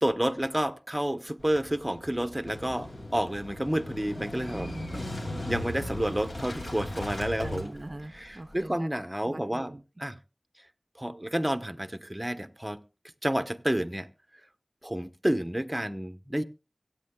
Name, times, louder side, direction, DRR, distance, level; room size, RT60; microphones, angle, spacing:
voice 1, 0.0-4.7 5.5-7.7 8.1-9.7 10.0-10.2 11.0-12.8 13.2-14.1 14.8-16.4, right 1 dB, 15° right, 0.8 m, -30 dB
Motorcycle / Engine starting, 1.4-8.6, left 1 dB, 65° left, 2.4 m, -38 dB
voice 2, 4.6-5.5 7.4-8.9 9.2-9.8, right 1 dB, 45° right, 0.5 m, -41 dB
24.5 x 8.6 x 2.3 m
wide cardioid pair, 40°, 0 cm